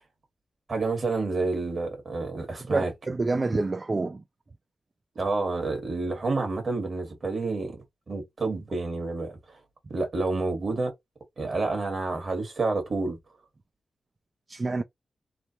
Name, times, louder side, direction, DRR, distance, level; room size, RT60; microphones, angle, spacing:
voice 1, 0.7-2.9 5.1-9.6 9.9-10.9 11.4-13.2, right 3 dB, 55° right, 1.4 m, -29 dB
voice 2, 2.6-4.2 14.5-14.8, right 3 dB, 40° right, 0.3 m, -27 dB
3.2 x 2.1 x 2.7 m
cardioid pair, 65°, 0 cm